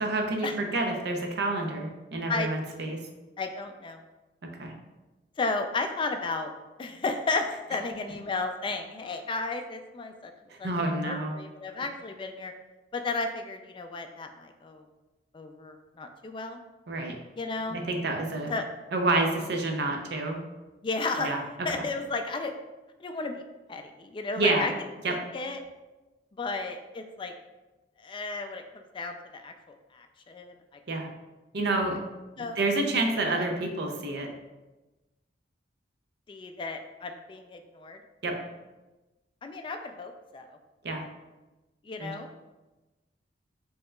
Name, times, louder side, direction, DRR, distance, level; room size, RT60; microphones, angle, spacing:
voice 1, 0.0-3.0 4.6-4.7 10.5-11.4 16.9-17.1 17.7-18.5 18.9-20.4 21.2-21.4 24.4-24.7 25.0-25.2 30.9-31.1 31.5-32.0 32.4-34.3 38.2-38.4 40.8-41.0 42.0-42.1, right 2 dB, 70° right, 3 dB, 0.6 m, -28 dB
voice 2, 3.4-4.0 5.4-6.5 6.8-10.3 10.6-12.5 12.9-14.8 15.3-16.6 17.4-17.8 18.5-18.6 20.8-21.3 21.6-22.5 23.0-23.4 23.7-24.7 25.1-25.6 26.4-27.3 28.0-30.5 32.4-32.6 33.3-33.4 36.3-38.0 39.4-40.6 41.8-42.3, left 3 dB, 30° left, 6 dB, 0.3 m, -33 dB
5.3 x 2.8 x 2.3 m, 1.1 s
head